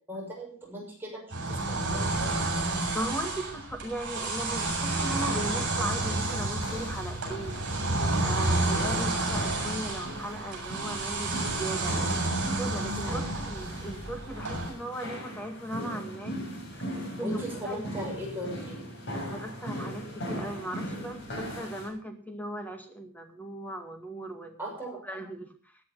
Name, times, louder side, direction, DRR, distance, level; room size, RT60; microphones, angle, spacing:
voice 1, 0.1-2.3 8.9-9.1 13.0-13.3 17.2-18.8 24.6-25.0, equal, 10° right, -3 dB, 6.5 m, -38 dB
sound 1, 1.3-14.7, right 2 dB, 55° right, 7.3 m, -30 dB
voice 2, 2.9-7.6 8.2-11.9 12.6-16.3 17.2-17.8 19.1-24.6 24.9-25.5, right 1 dB, 10° left, 5 dB, 2.1 m, -37 dB
sound 2, 5.3-21.9, equal, 55° left, 7.2 m, -39 dB
17.0 x 9.6 x 5.7 m, 0.41 s
head